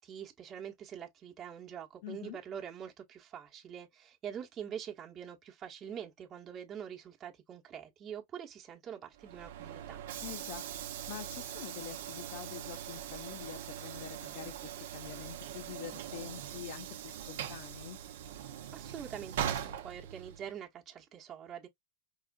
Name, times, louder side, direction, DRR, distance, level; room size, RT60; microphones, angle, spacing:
voice 1, 0.0-10.0 18.7-21.7, right 8 dB, 30° right, 1.0 m, -45 dB
voice 2, 2.0-2.4 10.2-10.6 11.1-18.0, left 11 dB, 60° left, 0.7 m, -46 dB
Train / Sliding door, 9.1-20.6, right 10 dB, 70° right, 0.7 m, -41 dB
4.8 x 2.4 x 2.3 m
hypercardioid pair, 115°, 0 cm